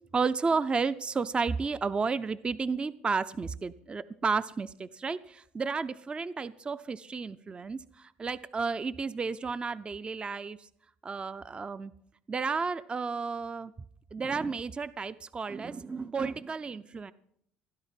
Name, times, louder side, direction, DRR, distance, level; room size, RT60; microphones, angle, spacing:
voice 1, 0.1-10.7 11.0-11.9 12.3-13.7 14.1-17.1, right 4 dB, 25° right, 15 dB, 0.5 m, -32 dB
17.0 x 10.5 x 5.8 m, 0.71 s
supercardioid pair, 85°, 4 cm